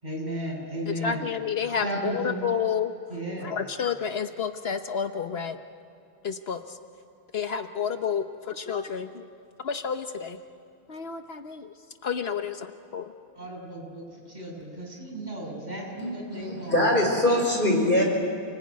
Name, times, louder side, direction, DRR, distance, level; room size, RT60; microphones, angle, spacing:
voice 1, 0.0-1.3 1.8-2.4 3.1-3.5 13.3-16.9, right 1 dB, 45° right, -2 dB, 6.7 m, -34 dB
voice 2, 0.9-2.9 3.4-5.6 6.2-6.8 7.3-9.3 9.6-10.4 10.9-11.7 12.0-13.1, left 7 dB, 70° left, 7 dB, 1.2 m, -30 dB
voice 3, 16.0-18.0, left 1 dB, 55° left, 0 dB, 5.6 m, -23 dB
29.5 x 20.0 x 9.4 m, 2.5 s
omnidirectional pair, 1.1 m